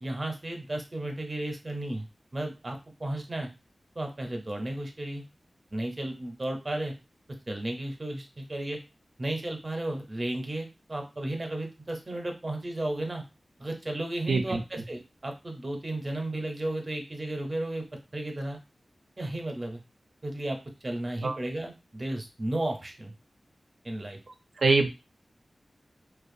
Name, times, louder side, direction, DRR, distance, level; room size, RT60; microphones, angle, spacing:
voice 1, 0.0-2.1 2.3-3.5 4.0-5.2 5.7-6.9 7.5-8.8 9.2-13.2 13.6-17.8 18.1-18.6 19.2-19.8 20.2-20.6 20.8-23.1 23.8-24.2, right 1 dB, 40° right, 4 dB, 0.6 m, -34 dB
voice 2, 14.3-14.6 21.2-21.3 24.6-24.9, right 3 dB, 75° right, 5 dB, 0.4 m, -23 dB
2.4 x 2.2 x 2.5 m, 0.27 s
wide cardioid pair, 70°, 0 cm